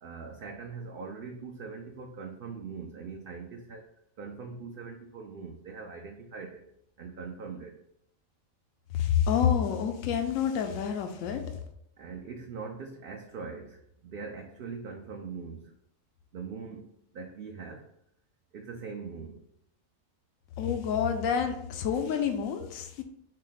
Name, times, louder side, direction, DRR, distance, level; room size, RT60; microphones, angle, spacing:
voice 1, 0.0-3.9 4.2-6.7 7.0-7.8 12.0-15.7 16.3-17.9 18.5-19.4, right 5 dB, 60° right, 2 dB, 0.6 m, -42 dB
voice 2, 8.9-11.6 20.6-23.0, left 8 dB, 85° left, 6 dB, 1.0 m, -28 dB
6.3 x 2.1 x 3.9 m, 0.74 s
omnidirectional pair, 1.4 m